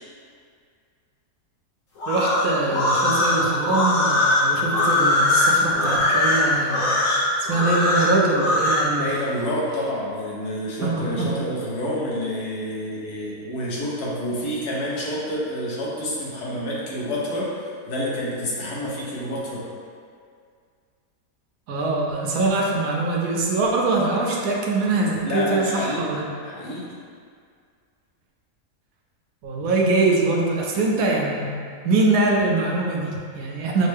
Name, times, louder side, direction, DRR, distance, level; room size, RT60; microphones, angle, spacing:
sound 1, 2.0-8.9, left 2 dB, 55° left, 1.2 m, -21 dB
voice 1, 2.1-9.2 10.8-11.4 21.7-26.3 29.4-31.6 31.8-33.9, right 2 dB, 70° right, -1 dB, 1.0 m, -23 dB
voice 2, 9.0-19.7 25.2-26.2 26.4-26.9, equal, 75° left, -5 dB, 1.4 m, -28 dB
6.2 x 2.2 x 3.3 m, 2.2 s
omnidirectional pair, 1.7 m